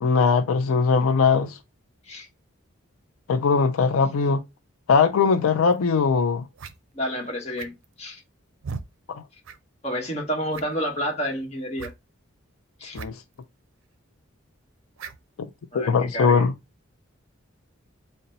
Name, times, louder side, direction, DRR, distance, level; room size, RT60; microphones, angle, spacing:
voice 1, 0.0-1.6 3.3-4.4 4.9-6.5 9.1-9.2 12.9-13.1 15.7-16.5, left 5 dB, 90° left, 0.4 m, -20 dB
sound 1, 5.7-5.8 6.5-6.8 7.5-7.9 8.6-8.9 9.4-9.6 9.9-10.0 10.5-10.9 11.8-12.0 12.9-13.1 13.3-13.4 15.0-15.2, right 5 dB, 80° right, 0.5 m, -36 dB
voice 2, 6.9-7.7 8.0-8.2 9.8-11.9 12.8-13.0 15.7-16.5, equal, 30° left, 1.1 m, -29 dB
3.9 x 2.2 x 4.1 m
head